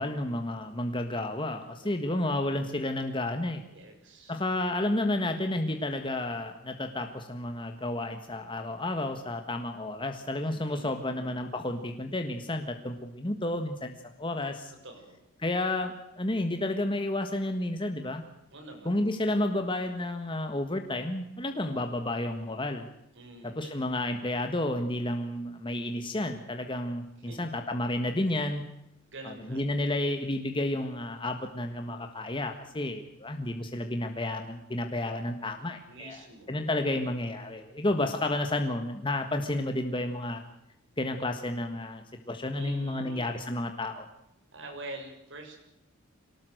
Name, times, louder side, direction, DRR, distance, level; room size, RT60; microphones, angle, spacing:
voice 1, 0.0-3.6 4.3-14.7 15.4-18.2 18.8-22.9 23.4-28.6 29.2-36.2 36.5-40.4 41.0-44.1, left 1 dB, 25° left, 5 dB, 1.6 m, -31 dB
voice 2, 1.8-2.3 3.7-4.4 10.7-11.3 14.8-15.2 18.5-19.0 23.1-23.7 27.2-27.5 29.1-29.6 35.9-36.6 37.8-38.2 42.5-43.3 44.5-45.6, right 2 dB, 60° right, 4 dB, 6.3 m, -46 dB
23.0 x 19.5 x 7.9 m, 0.85 s
head